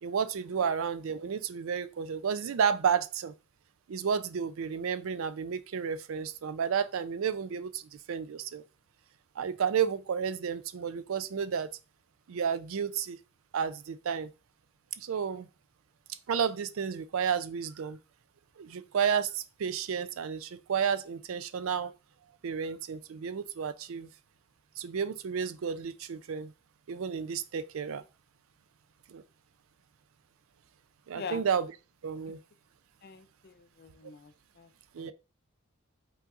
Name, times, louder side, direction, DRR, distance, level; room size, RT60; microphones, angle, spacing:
voice 1, 0.0-3.3 3.9-8.6 9.4-11.7 12.3-13.2 13.5-14.3 15.0-15.5 16.3-18.0 18.6-21.9 22.4-24.1 24.8-26.5 26.9-28.0 29.1-29.2 31.1-31.7 32.0-32.4 34.9-35.1, right 7 dB, 70° right, 0.4 m, -31 dB
voice 2, 33.0-34.7 35.0-35.1, left 5 dB, 50° left, 0.5 m, -43 dB
5.5 x 3.8 x 2.4 m
head